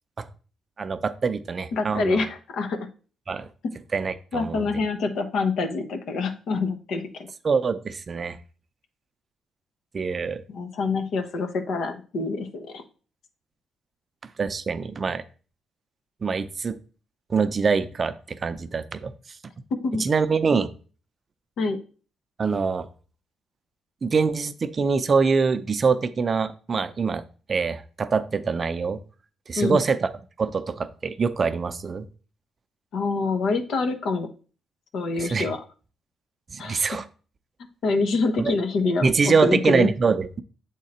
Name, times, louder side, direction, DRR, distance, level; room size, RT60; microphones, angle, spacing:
voice 1, 0.8-2.2 3.3-3.5 3.9-4.6 7.4-8.4 9.9-10.4 14.4-15.2 16.2-16.8 17.3-19.1 19.9-20.7 22.4-22.9 24.0-27.2 27.5-29.0 29.5-30.1 30.4-32.1 35.2-35.5 36.5-37.0 38.4-38.5 39.0-40.4, right 5 dB, 40° right, 12 dB, 0.5 m, -24 dB
voice 2, 1.7-2.8 4.3-7.3 10.5-12.8 19.8-20.0 21.6-21.8 29.6-29.8 32.9-34.3 34.9-35.6 36.6-36.9 37.8-39.1 39.4-39.9, left 3 dB, 70° left, 7 dB, 1.0 m, -26 dB
7.5 x 3.7 x 4.3 m, 0.38 s
cardioid pair, 90°, 0 cm